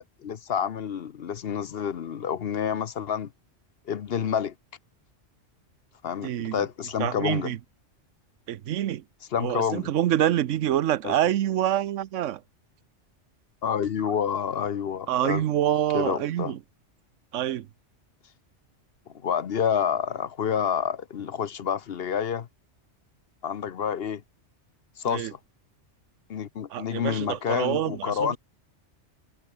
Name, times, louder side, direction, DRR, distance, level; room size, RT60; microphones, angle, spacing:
voice 1, 0.0-3.3 3.9-4.5 6.0-7.5 9.3-9.9 11.0-11.1 13.6-15.4 15.9-16.5 19.2-22.5 23.4-24.2 25.0-25.4 26.3-28.4, left 7 dB, 55° left, 1.0 m, -28 dB
voice 2, 6.2-6.6 7.0-7.6 8.5-9.0 9.4-12.4 15.1-16.6 17.3-17.7 25.1-25.3 26.7-28.4, right 12 dB, 85° right, 1.0 m, -26 dB
omnidirectional pair, 1.2 m